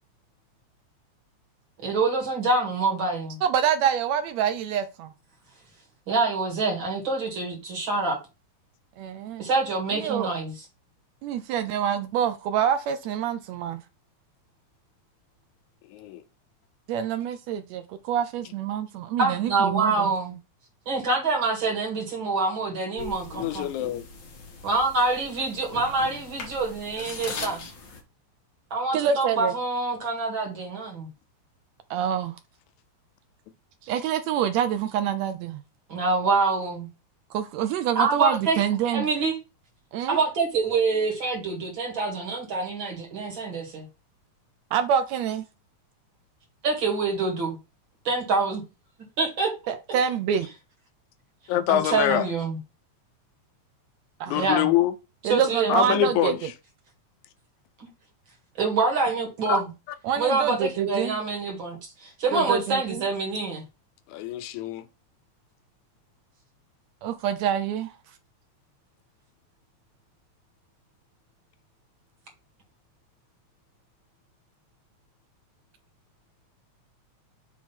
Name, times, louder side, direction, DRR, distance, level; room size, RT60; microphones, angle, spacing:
voice 1, 1.8-3.4 6.1-8.2 9.4-10.5 19.2-20.4 20.9-23.7 24.6-27.6 28.7-31.1 35.9-36.9 38.0-38.6 38.9-39.4 40.1-43.9 46.6-47.6 48.0-48.6 49.2-49.5 51.7-52.6 54.3-54.7 55.3-56.0 57.8-57.9 58.6-59.7 60.2-63.6, right 3 dB, 45° right, 2.4 m, -26 dB
voice 2, 3.4-5.1 9.0-9.5 9.9-10.3 11.2-13.8 16.9-20.1 28.9-29.5 31.9-32.4 33.8-35.6 37.3-39.1 39.9-40.2 44.7-45.4 49.7-50.5 52.1-52.2 54.2-54.4 55.2-56.3 60.0-61.2 62.3-63.0 67.0-67.9, right 9 dB, 80° right, 1.7 m, -26 dB
voice 3, 15.9-16.2 23.3-24.1 51.5-52.3 54.3-54.9 55.7-56.5 59.5-59.6 64.1-64.9, left 12 dB, 85° left, 2.0 m, -25 dB
sound 1, 23.0-28.0, left 3 dB, 50° left, 1.5 m, -40 dB
7.2 x 3.1 x 4.3 m
omnidirectional pair, 3.3 m